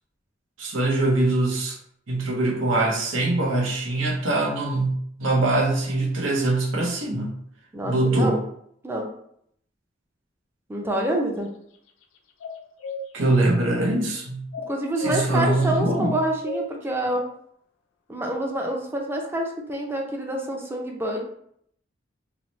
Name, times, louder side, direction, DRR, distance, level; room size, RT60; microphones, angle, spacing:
voice 1, 0.6-1.8 2.1-7.4 7.8-8.4 13.1-14.4 15.0-16.1, right 2 dB, 90° right, 0 dB, 0.7 m, -23 dB
voice 2, 7.7-8.4 8.8-9.1 10.7-11.5 14.7-17.2 18.1-21.2, right 1 dB, 10° right, 0 dB, 0.4 m, -27 dB
sound 1, 12.4-13.0 14.5-15.2 16.0-16.7, left 2 dB, 80° left, 0.3 m, -32 dB
2.8 x 2.0 x 3.0 m, 0.69 s
head